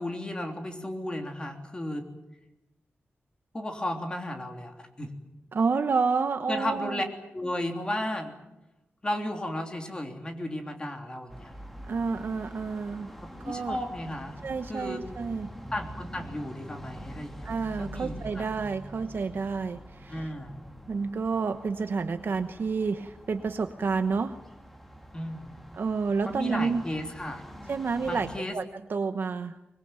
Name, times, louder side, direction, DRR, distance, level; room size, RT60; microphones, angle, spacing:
voice 1, 0.0-2.1 3.5-5.1 6.5-7.0 7.3-8.3 9.0-11.5 13.4-14.3 14.7-15.0 15.7-17.5 17.8-18.5 20.1-20.5 25.1-25.6 26.3-27.4 28.1-28.6, left 1 dB, 20° left, 4 dB, 3.3 m, -34 dB
voice 2, 5.5-7.0 11.9-13.1 13.4-13.8 14.4-15.5 17.4-20.3 20.9-24.4 25.7-26.8 27.7-28.6 28.9-29.6, right 5 dB, 55° right, 8 dB, 1.0 m, -29 dB
sound 1, 11.3-28.4, equal, 5° left, 2.4 m, -45 dB
24.0 x 21.5 x 9.0 m, 0.93 s
wide cardioid pair, 160°, 4 cm